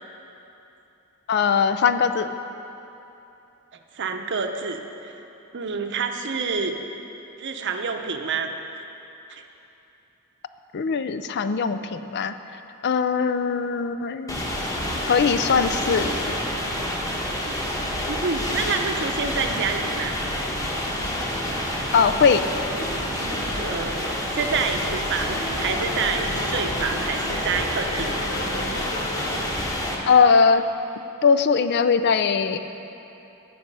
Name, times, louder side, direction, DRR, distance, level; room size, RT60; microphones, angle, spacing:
voice 1, 1.3-2.3 10.7-12.4 12.8-14.4 15.0-16.1 21.9-22.5 30.1-30.6 31.2-32.6, left 5 dB, 50° left, 10 dB, 0.4 m, -20 dB
voice 2, 3.9-5.1 5.5-6.8 7.4-8.5 9.3-9.4 17.4-17.6 18.1-20.2 23.6-28.2, right 5 dB, 55° right, 5 dB, 0.8 m, -28 dB
sound 1, 14.3-30.0, left 1 dB, 15° left, 1.2 m, -28 dB
sound 2, 21.3-30.2, left 1 dB, 80° left, 1.0 m, -38 dB
17.0 x 6.1 x 5.4 m, 2.9 s
head